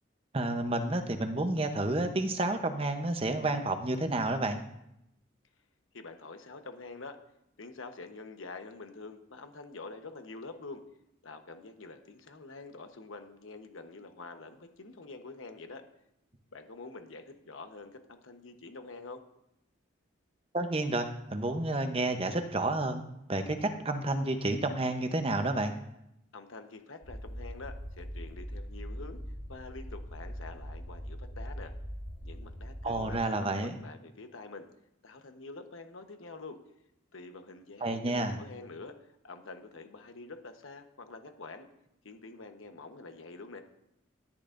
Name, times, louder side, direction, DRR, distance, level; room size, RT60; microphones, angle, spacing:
voice 1, 0.3-4.6 20.5-23.0 23.3-25.7 32.8-33.7 37.8-38.4, right 2 dB, 30° right, 7 dB, 0.8 m, -30 dB
voice 2, 5.9-7.2 7.6-10.8 11.2-15.8 16.5-19.2 26.3-29.2 29.5-31.7 32.2-34.7 35.0-36.6 37.1-41.7 42.0-43.6, left 3 dB, 85° left, 6 dB, 1.1 m, -46 dB
sound 1, 27.0-33.2, equal, 35° left, 3.6 m, -42 dB
11.5 x 10.0 x 2.6 m, 0.82 s
head